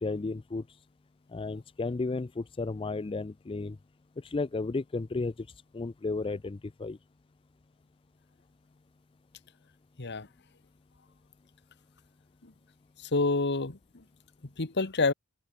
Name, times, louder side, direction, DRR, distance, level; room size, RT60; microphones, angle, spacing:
voice 1, 0.0-0.6 1.3-3.8 4.2-5.5 5.7-7.0, left 3 dB, 25° left, 0.4 m, -33 dB
voice 2, 13.0-14.0 14.6-15.1, left 3 dB, 50° left, 1.5 m, -28 dB
head